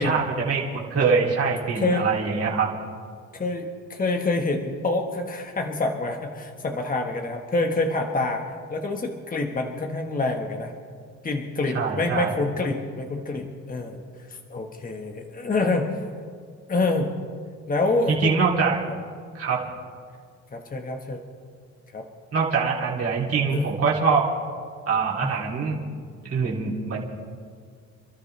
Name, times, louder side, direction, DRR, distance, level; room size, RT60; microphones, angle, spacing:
voice 1, 0.0-2.7 11.7-12.3 18.1-18.8 19.3-19.6 22.3-24.3 24.9-25.8 26.2-27.0, right 5 dB, 50° right, -5 dB, 3.0 m, -23 dB
voice 2, 1.7-2.1 3.3-8.4 8.7-10.7 11.2-16.1 16.7-17.1 17.7-18.4 20.5-21.2 21.9-22.1 23.5-23.7 25.2-25.3 26.7-26.8, left 3 dB, 30° left, 3 dB, 1.5 m, -27 dB
28.5 x 13.0 x 3.4 m, 2.1 s
cardioid pair, 90°, 30 cm